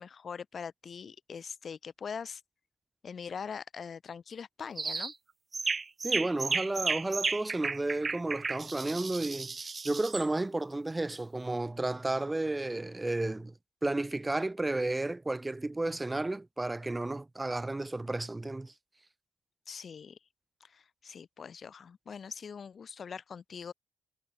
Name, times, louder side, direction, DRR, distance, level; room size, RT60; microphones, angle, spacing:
voice 1, 0.0-2.4 3.0-5.1 19.7-20.2 20.6-23.7, left 6 dB, 45° left, 3.4 m, -42 dB
sound 1, 4.8-5.1 5.5-10.3, right 4 dB, 30° right, 2.6 m, -33 dB
voice 2, 6.0-9.5 9.8-13.5 13.8-18.7, right 2 dB, 15° right, 2.9 m, -32 dB
cardioid pair, 90°, 0 cm